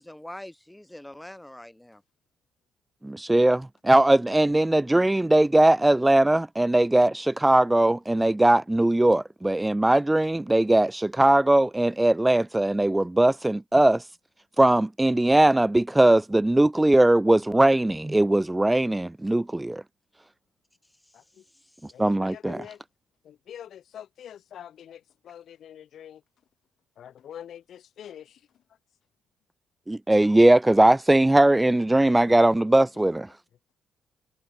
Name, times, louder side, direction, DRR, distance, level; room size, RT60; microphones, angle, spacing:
voice 1, 0.0-2.0 21.8-21.9, left 1 dB, 5° left, 7.3 m, -43 dB
voice 2, 3.0-14.0 14.6-19.8 22.0-22.6 29.9-33.3, right 1 dB, 10° right, 1.4 m, -20 dB
voice 3, 21.1-21.4 21.9-22.8 23.2-26.2 27.0-28.4 33.0-33.1, left 10 dB, 65° left, 4.5 m, -45 dB
cardioid pair, 90°, 0 cm